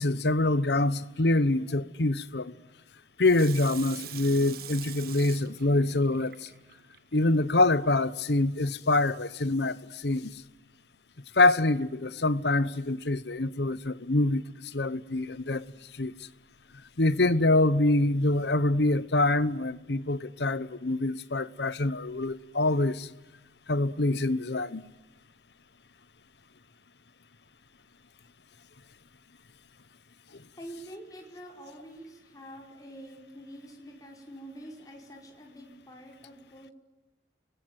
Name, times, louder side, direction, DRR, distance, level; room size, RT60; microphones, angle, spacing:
voice 1, 0.0-2.6 3.2-6.5 7.1-10.4 11.3-14.4 14.7-15.7 15.9-16.1 17.0-23.1 23.7-24.8, left 2 dB, 65° left, 1.0 m, -25 dB
Water tap faucet / Sink (filling or washing), 3.2-7.0 7.5-7.6, right 10 dB, 55° right, 1.3 m, -44 dB
voice 2, 30.6-36.7, right 1 dB, 20° left, 5.3 m, -46 dB
30.0 x 20.5 x 9.3 m
head